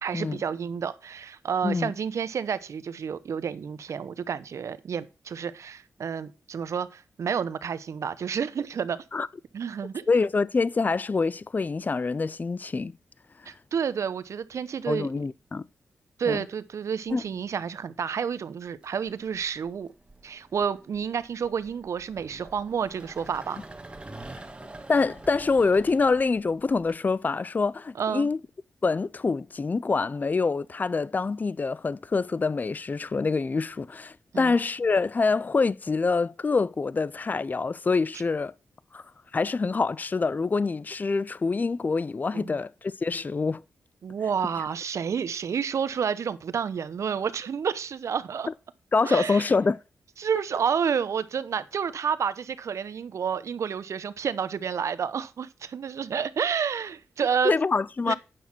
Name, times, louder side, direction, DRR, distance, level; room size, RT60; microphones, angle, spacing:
voice 1, 0.0-9.0 9.5-10.1 13.5-15.1 16.2-19.9 20.2-23.6 28.0-28.3 34.3-34.6 42.3-42.6 44.0-48.5 49.0-49.5 50.2-57.5 58.1-58.2, right 7 dB, 70° right, 0.8 m, -30 dB
voice 2, 10.1-12.9 14.9-15.7 16.3-16.4 17.1-17.2 24.9-28.4 28.8-38.5 38.9-39.0 39.3-43.6 48.9-49.8 57.4-58.1, left 4 dB, 35° left, 0.4 m, -25 dB
sound 1, 17.1-17.6 18.7-27.0, right 2 dB, 20° right, 1.6 m, -47 dB
9.3 x 6.0 x 5.8 m
cardioid pair, 65°, 5 cm